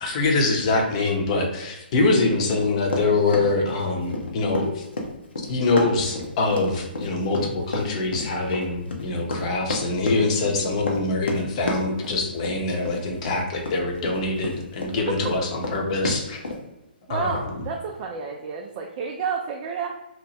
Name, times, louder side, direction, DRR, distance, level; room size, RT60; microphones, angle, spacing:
voice 1, 0.0-4.8 5.5-16.4 17.1-17.4, left 3 dB, 40° left, 1 dB, 0.8 m, -24 dB
Run, 2.5-14.9 15.2-16.6, left 2 dB, 80° left, 0.8 m, -31 dB
voice 2, 14.1-14.4 15.1-15.4 17.1-19.9, right 5 dB, 30° right, 1 dB, 0.3 m, -30 dB
2.8 x 2.1 x 4.1 m, 0.95 s
hypercardioid pair, 150°, 6 cm